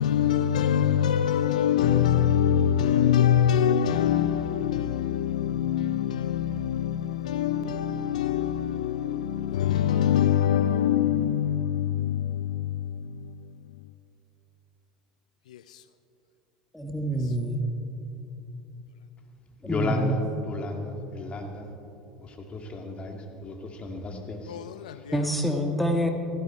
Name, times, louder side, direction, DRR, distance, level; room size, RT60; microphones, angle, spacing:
voice 1, 0.0-13.3 15.5-15.8 24.5-25.2, left 9 dB, 80° left, 0.4 m, -24 dB
voice 2, 16.7-17.6 19.6-20.2 25.1-26.1, equal, 5° left, 1.8 m, -26 dB
voice 3, 19.6-21.7 22.2-24.6 24.9-25.1, left 2 dB, 30° left, 2.4 m, -33 dB
16.0 x 14.5 x 4.5 m
hypercardioid pair, 80°, 4 cm